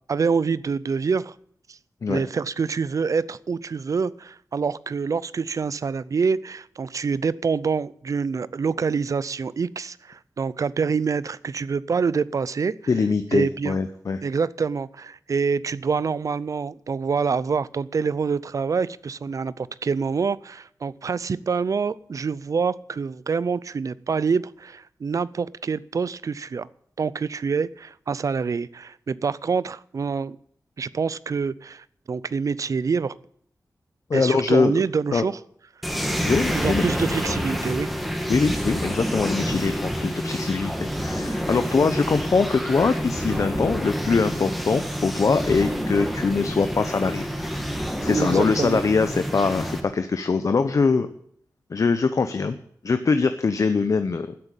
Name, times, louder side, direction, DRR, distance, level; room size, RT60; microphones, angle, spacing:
voice 1, 0.1-1.3 1.7-1.8 2.1-12.7 13.3-13.8 14.2-26.7 27.0-30.4 30.8-33.1 34.1-35.4 36.5-37.9 48.1-48.8, right 5 dB, 55° right, 19 dB, 0.5 m, -26 dB
voice 2, 12.9-14.2 34.1-34.7 35.1-35.2 36.3-36.8 38.3-47.6 48.0-51.1 51.7-52.6 52.8-54.3, left 4 dB, 55° left, 9 dB, 0.8 m, -22 dB
sound 1, 35.8-49.8, equal, ahead, 2.0 m, -28 dB
13.0 x 8.0 x 9.0 m, 0.65 s
wide cardioid pair, 120°, 7 cm